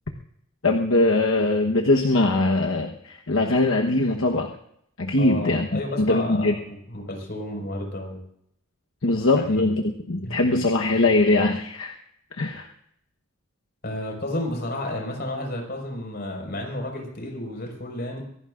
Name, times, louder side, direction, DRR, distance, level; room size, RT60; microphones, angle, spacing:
voice 1, 0.6-4.5 5.0-6.5 9.0-11.9 12.4-12.7, left 2 dB, 70° left, 2 dB, 1.2 m, -21 dB
voice 2, 5.1-8.2 9.5-9.7 10.2-10.4 13.8-18.2, left 1 dB, 50° left, 1 dB, 5.2 m, -32 dB
24.5 x 17.5 x 2.5 m, 0.72 s
head